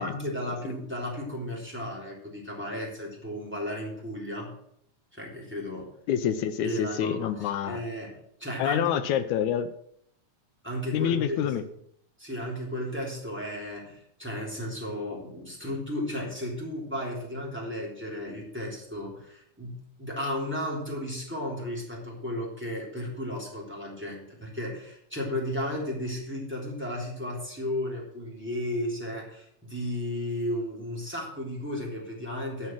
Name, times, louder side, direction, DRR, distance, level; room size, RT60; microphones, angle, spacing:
voice 1, 0.0-4.5 5.1-5.9 6.6-8.1 8.4-9.0 10.6-11.5 12.2-32.7, left 1 dB, 5° right, -3 dB, 3.2 m, -34 dB
voice 2, 6.1-7.8 8.6-9.7 10.9-11.6, left 9 dB, 80° left, 10 dB, 2.0 m, -27 dB
11.5 x 6.4 x 7.5 m, 0.71 s
omnidirectional pair, 3.5 m